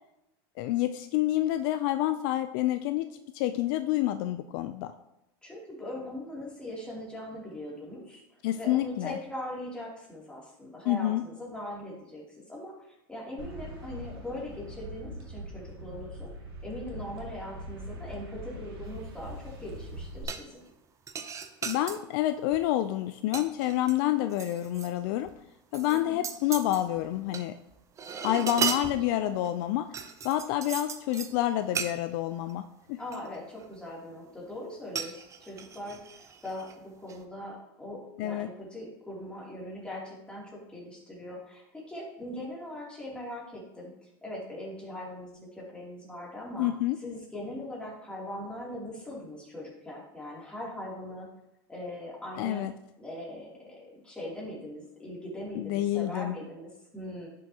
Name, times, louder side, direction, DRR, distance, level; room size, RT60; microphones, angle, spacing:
voice 1, 0.6-3.1 3.3-4.9 8.4-9.2 10.9-11.2 21.6-25.3 25.7-27.6 28.2-29.9 30.2-33.0 38.2-38.5 46.6-47.0 52.4-52.7 55.6-56.3, left 14 dB, 60° left, 10 dB, 0.4 m, -28 dB
voice 2, 5.4-8.2 8.5-16.3 16.6-20.6 25.9-26.2 28.2-29.0 29.2-29.4 32.9-36.0 36.4-46.7 47.0-51.3 51.7-52.7 53.0-57.3, left 1 dB, 5° left, -5 dB, 2.8 m, -41 dB
sound 1, 13.4-20.2, right 1 dB, 85° right, 1.9 m, -42 dB
forks knifes dish, 20.3-20.7 21.1-22.0 22.5-22.8 23.1-24.9 25.3-25.4 25.7-27.4 27.7-29.5 29.9-31.3 31.7-31.9 32.5-32.6 33.1-33.8 35.0-36.7 37.1-37.2, right 6 dB, 25° right, 0.6 m, -36 dB
10.5 x 6.3 x 2.9 m, 0.88 s
supercardioid pair, 125°, 13 cm